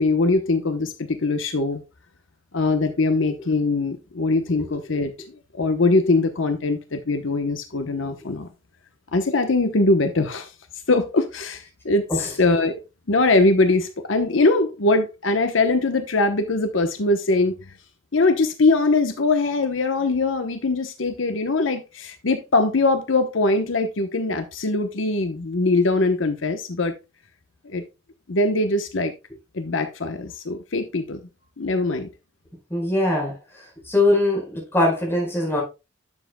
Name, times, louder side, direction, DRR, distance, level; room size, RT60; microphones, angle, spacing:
voice 1, 0.0-1.8 2.5-5.1 5.5-8.5 9.1-10.5 10.9-12.8 13.1-17.5 18.1-26.9 27.6-27.8 28.3-29.1 29.5-31.2 31.6-32.1, left 2 dB, 80° left, 0.9 m, -22 dB
voice 2, 32.7-33.3 33.8-35.6, left 2 dB, 10° left, 4.5 m, -21 dB
10.5 x 7.4 x 2.2 m
head